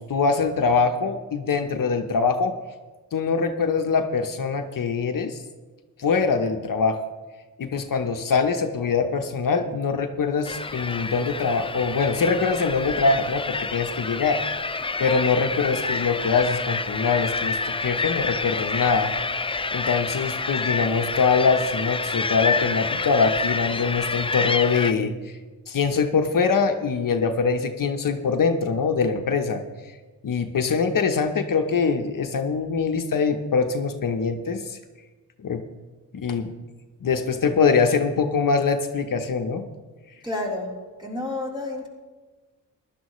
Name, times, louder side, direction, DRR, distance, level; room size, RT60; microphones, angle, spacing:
voice 1, 0.0-2.5 3.1-5.4 6.0-7.0 7.6-14.4 15.0-19.1 19.7-25.3 25.7-29.6 30.2-34.8 35.4-35.6 36.1-36.5 37.0-39.6, left 5 dB, 60° left, 6 dB, 0.9 m, -23 dB
sound 1, 10.4-24.9, left 3 dB, 15° left, 0.4 m, -28 dB
voice 2, 40.2-41.9, left 2 dB, 10° right, -2 dB, 3.7 m, -30 dB
15.5 x 11.5 x 3.1 m, 1.3 s
cardioid pair, 65°, 36 cm